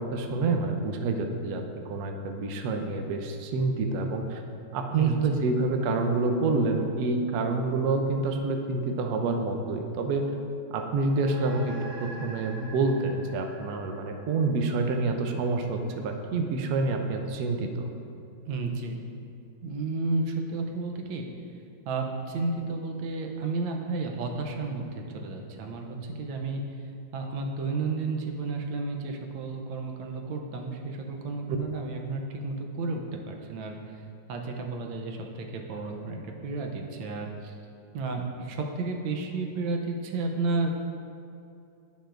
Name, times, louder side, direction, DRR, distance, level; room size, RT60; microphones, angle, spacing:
voice 1, 0.0-1.6 1.9-4.4 4.7-10.2 10.7-11.8 12.2-17.9, right 3 dB, 70° right, 4 dB, 1.1 m, -27 dB
sound 1, 11.1-15.8, right 1 dB, 40° right, 0.9 m, -47 dB
voice 2, 18.5-19.0 19.6-21.3 21.8-26.6 27.1-34.0 34.3-37.5 37.9-40.7, right 3 dB, 90° right, 2 dB, 1.5 m, -32 dB
10.5 x 5.6 x 2.5 m, 2.6 s
omnidirectional pair, 2.0 m